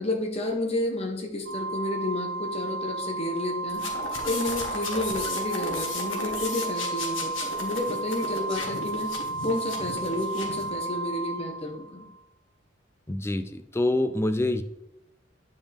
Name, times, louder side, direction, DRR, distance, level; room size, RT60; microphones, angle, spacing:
voice 1, 0.0-3.8 4.2-9.1 9.4-12.0, left 1 dB, 30° left, 2 dB, 1.1 m, -31 dB
Organ, 1.5-12.2, right 2 dB, 55° right, 0.8 m, -33 dB
sound 1, 3.7-10.7, left 3 dB, 80° left, 1.6 m, -35 dB
voice 2, 13.1-14.6, left 1 dB, 15° left, 10 dB, 0.4 m, -26 dB
9.4 x 5.4 x 3.5 m, 0.85 s
head